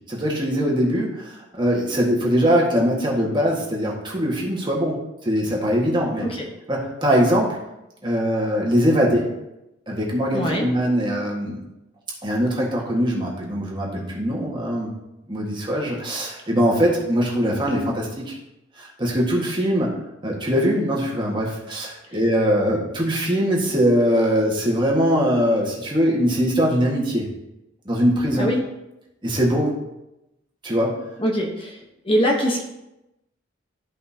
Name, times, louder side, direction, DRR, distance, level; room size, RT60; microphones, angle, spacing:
voice 1, 0.1-5.0 5.2-6.3 6.7-7.6 8.0-9.3 9.9-11.6 12.2-14.9 15.3-18.3 18.8-19.9 20.2-27.3 27.8-28.5 29.2-29.7 30.6-31.0, equal, 25° right, -3 dB, 1.6 m, -21 dB
voice 2, 10.3-10.7 28.4-28.6 31.2-31.7 32.0-32.6, equal, 25° left, -1 dB, 1.0 m, -22 dB
13.0 x 5.4 x 2.8 m, 0.92 s
head